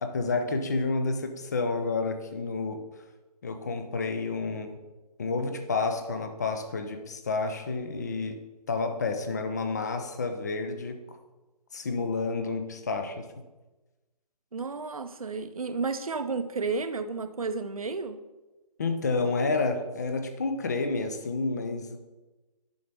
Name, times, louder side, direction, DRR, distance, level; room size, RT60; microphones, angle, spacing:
voice 1, 0.0-2.8 3.4-4.8 5.2-8.4 8.7-11.2 11.7-13.2 18.8-22.0, left 3 dB, 25° left, 7 dB, 0.5 m, -30 dB
voice 2, 14.5-18.2, right 4 dB, 60° right, 10 dB, 0.6 m, -32 dB
10.0 x 5.6 x 3.4 m, 1.2 s
figure-of-eight pair, 145°, 21 cm